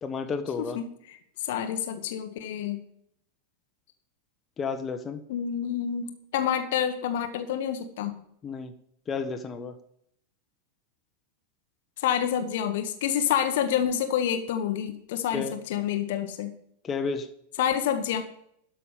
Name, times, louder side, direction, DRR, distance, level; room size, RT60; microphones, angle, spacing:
voice 1, 0.0-0.8 4.6-5.2 8.4-8.7 9.1-9.7 15.3-15.5 16.8-17.3, left 5 dB, 20° left, 6 dB, 1.2 m, -31 dB
voice 2, 0.7-2.8 5.3-8.1 12.0-16.5 17.6-18.2, left 9 dB, 55° left, 7 dB, 1.2 m, -28 dB
12.5 x 5.9 x 7.3 m, 0.70 s
figure-of-eight pair, 90°, 0 cm